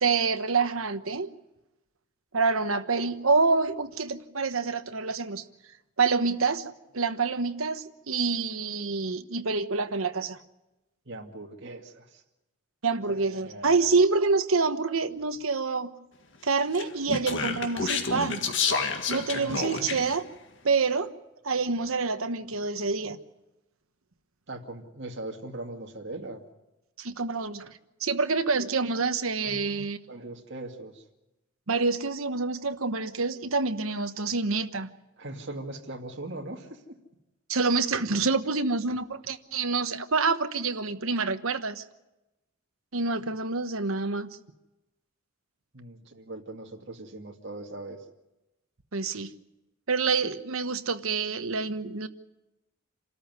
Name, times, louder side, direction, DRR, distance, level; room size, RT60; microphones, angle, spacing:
voice 1, 0.0-1.3 2.3-5.4 6.0-10.4 12.8-15.9 16.4-18.4 19.1-20.2 20.6-21.1 21.4-23.2 27.0-30.0 31.7-34.9 37.5-41.8 42.9-44.3 48.9-49.3 49.9-52.1, right 4 dB, 75° right, 9 dB, 1.2 m, -27 dB
voice 2, 11.1-12.2 13.1-14.0 19.3-20.0 24.5-26.4 29.5-29.8 30.1-31.0 35.2-36.8 45.7-48.0, right 2 dB, 55° right, 1 dB, 2.3 m, -40 dB
Speech, 16.7-20.2, left 5 dB, 60° left, 1.9 m, -29 dB
27.5 x 13.5 x 9.6 m, 1.0 s
head